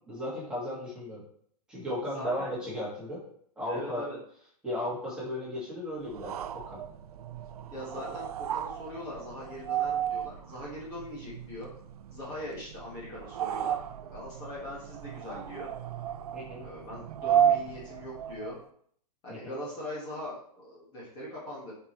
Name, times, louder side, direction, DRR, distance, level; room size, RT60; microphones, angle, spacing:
voice 1, 0.1-1.2 1.7-3.2 3.6-4.1 4.6-6.8 7.9-8.2 16.3-16.6 19.3-19.5, left 1 dB, 5° right, -8 dB, 2.0 m, -35 dB
voice 2, 2.0-2.6 3.7-4.2 7.7-11.7 12.1-15.7 16.6-18.6 19.2-21.7, left 1 dB, 20° left, -6 dB, 1.8 m, -41 dB
sound 1, 6.1-18.6, right 9 dB, 70° right, 0.5 m, -33 dB
7.8 x 4.7 x 3.2 m, 0.63 s
hypercardioid pair, 165°, 20 cm